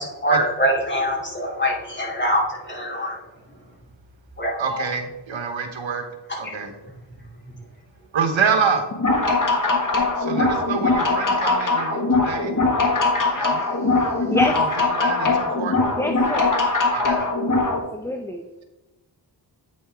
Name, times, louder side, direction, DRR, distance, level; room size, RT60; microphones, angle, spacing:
voice 1, 0.2-3.2 4.4-4.8 6.4-6.5, equal, 25° left, -3 dB, 2.6 m, -24 dB
voice 2, 4.6-6.0 6.4-6.7 8.1-8.9 10.2-12.5 13.3-13.6 14.3-15.8 16.9-17.3, right 5 dB, 85° right, 6 dB, 1.1 m, -26 dB
sound 1, 8.9-17.8, left 3 dB, 45° left, 1.5 m, -21 dB
voice 3, 16.0-16.5 17.6-18.4, left 1 dB, 5° left, 5 dB, 0.5 m, -26 dB
8.7 x 5.5 x 3.4 m, 1.0 s
cardioid pair, 65°, 45 cm